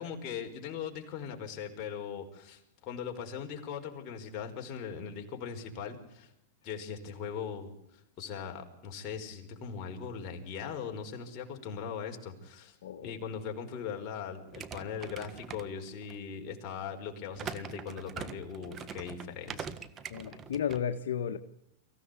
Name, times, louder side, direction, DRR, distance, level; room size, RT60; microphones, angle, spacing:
voice 1, 0.0-6.3 6.6-7.7 8.2-12.8 13.0-19.7, left 7 dB, 40° left, 4.9 m, -40 dB
voice 2, 12.8-13.1 20.1-21.4, left 8 dB, 80° left, 1.5 m, -33 dB
sound 1, 14.5-16.2 17.3-20.8, right 7 dB, 25° right, 1.6 m, -43 dB
24.0 x 15.5 x 8.4 m
hypercardioid pair, 130°, 0 cm